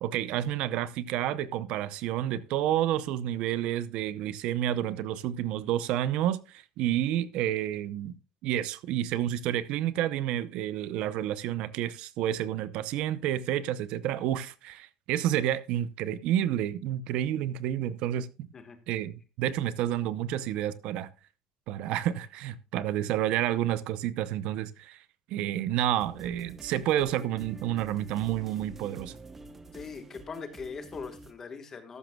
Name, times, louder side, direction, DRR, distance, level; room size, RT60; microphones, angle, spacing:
voice 1, 0.0-8.1 8.4-18.5 18.9-21.1 21.7-25.0 25.3-29.1, right 12 dB, 55° right, 0.7 m, -30 dB
sound 1, 26.0-31.3, right 2 dB, 15° right, 0.8 m, -48 dB
voice 2, 29.7-32.0, left 5 dB, 20° left, 1.4 m, -41 dB
14.0 x 12.0 x 2.3 m
cardioid pair, 175°, 2 cm